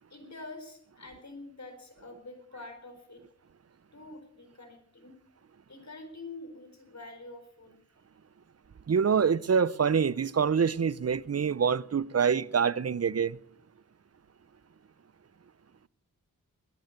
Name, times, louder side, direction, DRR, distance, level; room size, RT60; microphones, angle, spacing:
voice 1, 0.1-3.2 3.9-5.1 5.7-7.8, left 2 dB, 50° left, 4.5 m, -46 dB
voice 2, 8.9-13.4, right 6 dB, 45° right, 0.7 m, -26 dB
21.0 x 10.0 x 6.6 m
cardioid pair, 40°, 35 cm